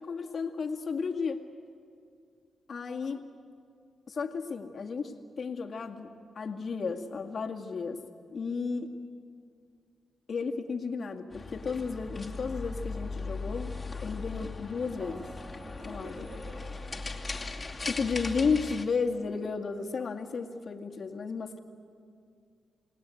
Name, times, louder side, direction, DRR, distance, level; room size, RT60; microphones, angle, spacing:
voice 1, 0.0-1.5 2.7-3.3 4.1-8.0 8.3-8.9 10.3-15.3 15.9-16.2 17.9-21.6, left 5 dB, 60° left, 3 dB, 2.2 m, -33 dB
sound 1, 11.3-18.8, left 3 dB, 30° left, 2.6 m, -38 dB
Acoustic guitar, 15.0-18.2, right 2 dB, 25° right, 1.4 m, -52 dB
voice 2, 15.6-17.9, right 1 dB, 70° right, -2 dB, 5.9 m, -50 dB
28.0 x 19.5 x 9.3 m, 2.4 s
cardioid pair, 65°, 0 cm